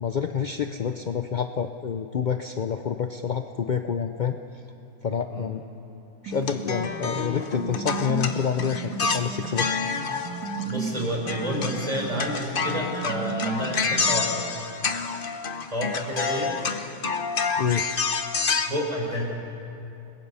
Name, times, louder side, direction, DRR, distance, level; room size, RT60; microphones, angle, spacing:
voice 1, 0.0-4.4 5.0-5.6 6.2-9.8 17.6-17.9, left 7 dB, 55° left, 7 dB, 0.5 m, -28 dB
sound 1, 6.3-14.3, right 5 dB, 75° right, 2.3 m, -35 dB
sound 2, 6.4-11.0 11.3-18.7, left 5 dB, 40° left, 0.9 m, -28 dB
voice 2, 10.6-14.4 15.7-16.5 18.6-19.3, equal, 25° right, -2 dB, 5.0 m, -29 dB
29.5 x 20.5 x 5.6 m, 2.8 s
omnidirectional pair, 1.7 m